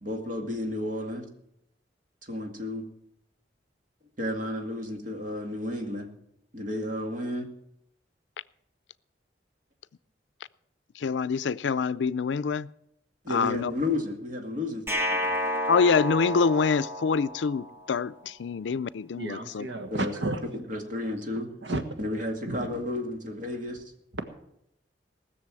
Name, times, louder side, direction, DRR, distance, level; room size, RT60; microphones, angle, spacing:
voice 1, 0.0-1.3 2.2-2.9 4.2-6.1 6.5-7.5 13.2-15.3 19.9-20.1 20.4-21.5 22.0-23.8, left 1 dB, 45° right, 2.2 m, -32 dB
voice 2, 11.0-12.7 13.3-13.7 15.7-19.7, left 5 dB, 85° left, 0.4 m, -26 dB
sound 1, 14.9-17.9, equal, 15° right, 1.3 m, -30 dB
voice 3, 19.1-20.7 21.6-22.7 24.1-24.2, right 2 dB, 85° right, 1.5 m, -33 dB
19.0 x 6.8 x 7.6 m
head